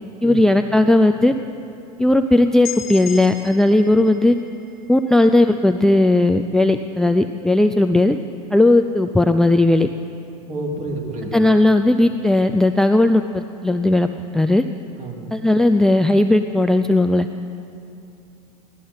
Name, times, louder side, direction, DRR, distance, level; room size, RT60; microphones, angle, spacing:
voice 1, 0.2-1.4 2.0-4.4 4.9-8.2 8.5-9.9 11.3-14.1 14.3-14.7 15.3-17.3, left 2 dB, 5° left, 7 dB, 0.4 m, -16 dB
sound 1, 2.6-6.5, left 10 dB, 65° left, 1.5 m, -37 dB
voice 2, 10.5-11.5 15.0-15.4, right 2 dB, 40° right, 0 dB, 3.1 m, -30 dB
16.5 x 12.0 x 5.6 m, 2.7 s
hypercardioid pair, 100°, 19 cm